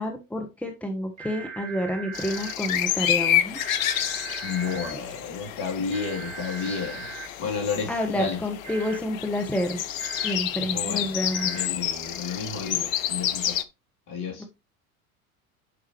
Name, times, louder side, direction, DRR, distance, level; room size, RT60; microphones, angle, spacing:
voice 1, 0.0-3.6 7.9-9.8 10.2-11.5 14.4-14.5, left 1 dB, 5° left, 1.3 m, -29 dB
sound 1, 1.2-2.5 3.6-4.9 5.9-7.3 8.6-9.0 10.0-10.3 11.3-11.7, right 5 dB, 65° right, 3.2 m, -39 dB
sound 2, 2.1-13.6, left 11 dB, 70° left, 0.9 m, -29 dB
voice 2, 4.1-7.1 7.4-8.4 10.6-13.6 14.1-14.5, left 5 dB, 50° left, 3.2 m, -32 dB
9.4 x 5.6 x 3.0 m
hypercardioid pair, 75°, 42 cm